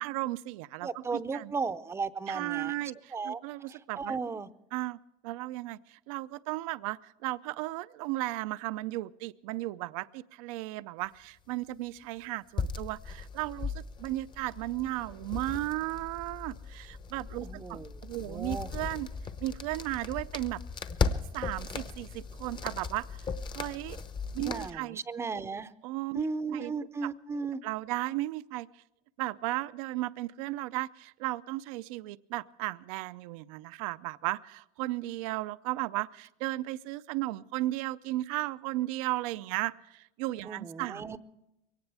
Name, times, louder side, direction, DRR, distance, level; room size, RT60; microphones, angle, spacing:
voice 1, 0.0-1.5 2.3-4.2 4.7-19.1 19.4-20.6 21.3-23.3 23.5-24.0 24.3-25.0 25.3-25.4 25.8-26.2 26.5-26.7 27.0-27.1 27.6-28.8 29.2-41.2, right 18 dB, 80° right, 15 dB, 0.5 m, -35 dB
voice 2, 0.8-2.7 3.1-3.4 3.7-4.5 17.4-17.9 18.2-18.7 24.4-25.7 26.1-27.6 40.5-41.2, right 4 dB, 15° right, 13 dB, 0.6 m, -35 dB
sound 1, 12.6-24.7, left 5 dB, 25° left, 0.8 m, -37 dB
22.5 x 18.0 x 3.4 m, 0.89 s
supercardioid pair, 140°, 17 cm